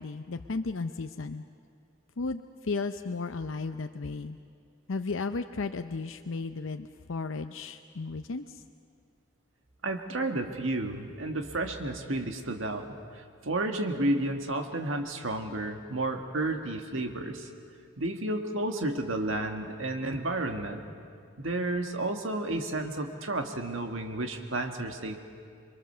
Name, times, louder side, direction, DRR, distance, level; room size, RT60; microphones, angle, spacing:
voice 1, 0.0-1.4 2.2-4.4 4.9-8.6, left 3 dB, 75° left, 7 dB, 0.7 m, -34 dB
voice 2, 9.8-12.9 13.1-17.5 18.0-20.9 21.4-25.2, right 2 dB, 75° right, 4 dB, 1.7 m, -31 dB
27.0 x 23.5 x 6.8 m, 2.3 s
head